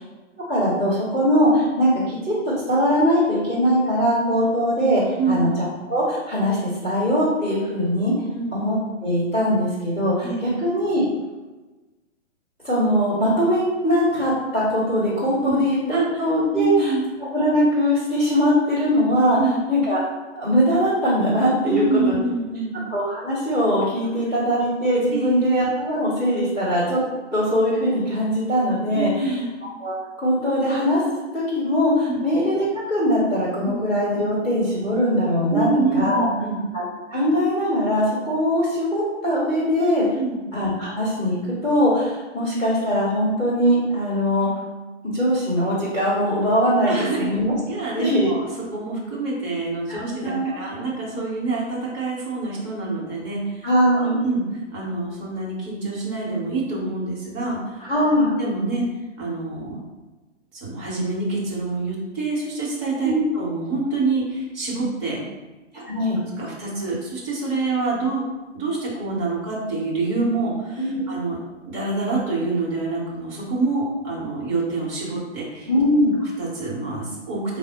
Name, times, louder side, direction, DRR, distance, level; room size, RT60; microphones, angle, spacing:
voice 1, 0.5-2.4 2.7-6.6 6.8-8.1 8.5-8.8 9.0-11.0 12.6-15.8 16.2-16.9 17.3-19.4 19.7-20.0 20.3-22.1 22.9-27.0 27.3-29.4 29.8-31.0 31.3-35.7 35.9-36.3 36.7-36.8 37.1-40.0 40.5-44.5 45.1-47.5 47.9-48.3 49.9-50.5 53.6-54.2 57.8-58.3 63.0-63.2 65.7-66.2 70.8-71.0 75.7-76.1, equal, ahead, -20 dB, 0.4 m, -21 dB
voice 2, 15.9-16.2 16.5-17.1 19.3-19.6 21.6-22.7 25.1-25.4 28.9-29.5 32.1-32.2 35.5-36.6 40.1-40.4 46.9-47.3 47.7-48.4 48.7-54.4 54.7-57.8 58.2-58.8 59.2-59.8 60.5-65.2 65.7-65.8 66.4-68.2 68.5-71.4 71.6-75.7 76.2-77.6, right 3 dB, 25° right, -4 dB, 0.9 m, -26 dB
4.0 x 2.0 x 3.8 m, 1.2 s
figure-of-eight pair, 130°, 37 cm